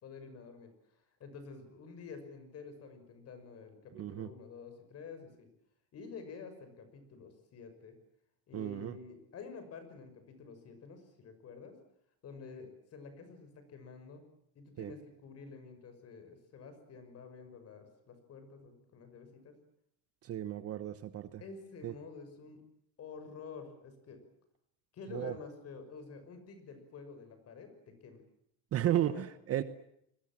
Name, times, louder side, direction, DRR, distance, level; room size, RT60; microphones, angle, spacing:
voice 1, 0.0-0.7 1.2-5.5 5.9-8.0 8.5-11.8 12.2-14.2 14.5-19.6 21.4-22.6 23.0-24.2 24.9-28.2 28.8-29.2, left 5 dB, 35° left, 9 dB, 6.1 m, -49 dB
voice 2, 3.9-4.3 8.5-9.0 14.8-14.9 20.2-21.4 21.8-21.9 25.1-25.3 28.7-29.6, right 12 dB, 35° right, 12 dB, 1.1 m, -34 dB
29.0 x 22.0 x 7.5 m, 0.74 s
cardioid pair, 150°, 41 cm